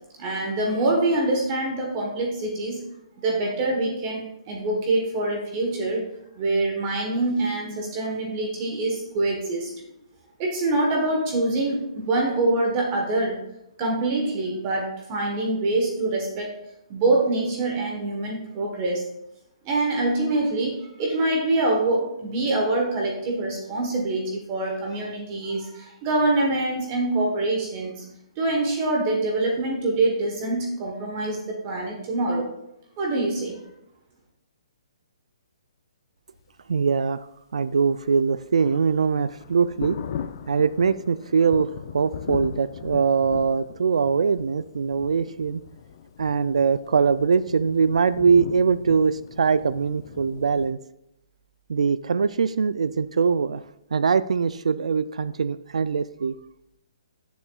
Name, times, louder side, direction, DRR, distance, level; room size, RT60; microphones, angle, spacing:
voice 1, 0.2-2.8 3.2-6.1 6.3-9.7 10.4-13.4 13.8-16.5 16.9-19.1 19.6-28.1 28.4-32.5 33.0-33.6, right 2 dB, 25° right, 0 dB, 1.1 m, -25 dB
voice 2, 36.7-37.2 37.5-40.0 40.5-45.6 46.2-50.8 51.7-53.6 53.9-56.3, right 5 dB, 85° right, 15 dB, 0.3 m, -22 dB
Thunder, 37.9-50.7, left 8 dB, 40° left, 0.5 m, -39 dB
11.5 x 6.9 x 2.3 m, 0.82 s
hypercardioid pair, 165°, 3 cm